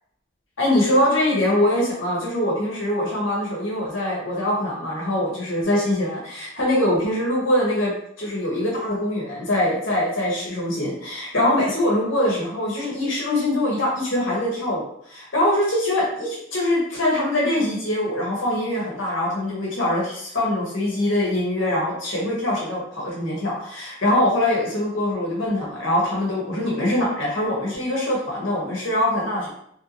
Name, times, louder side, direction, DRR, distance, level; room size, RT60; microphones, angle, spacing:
voice 1, 0.6-29.5, left 1 dB, 70° left, -4 dB, 1.1 m, -23 dB
3.2 x 2.7 x 2.9 m, 0.70 s
head